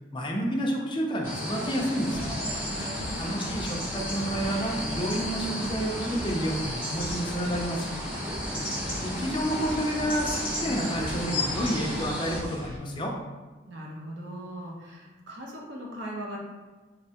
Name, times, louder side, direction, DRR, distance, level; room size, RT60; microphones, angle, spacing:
voice 1, 0.1-2.4 3.2-7.9 9.0-13.1, equal, 25° left, 0 dB, 0.4 m, -30 dB
sound 1, 1.2-12.4, left 1 dB, 10° right, 1.0 m, -33 dB
sound 2, 2.1-12.8, equal, 25° right, 0.6 m, -40 dB
voice 2, 2.6-3.3 13.7-16.4, right 1 dB, 65° right, -2 dB, 0.7 m, -40 dB
4.0 x 2.2 x 2.7 m, 1.3 s
head